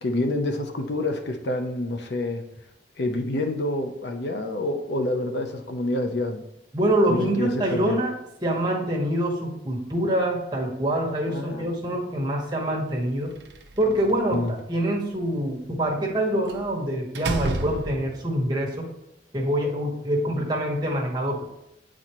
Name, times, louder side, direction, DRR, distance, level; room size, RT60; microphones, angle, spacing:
voice 1, 0.0-2.4 3.0-6.5 7.1-8.0 11.3-12.0 14.3-14.5, left 2 dB, 65° left, 5 dB, 0.7 m, -28 dB
voice 2, 6.7-8.1 8.4-13.3 13.8-18.9 19.3-21.4, right 1 dB, 25° right, -2 dB, 1.4 m, -25 dB
Slam, 13.3-14.3 16.5-16.7 17.1-18.4, right 2 dB, 65° right, 0.7 m, -31 dB
8.8 x 4.2 x 3.0 m, 0.84 s
head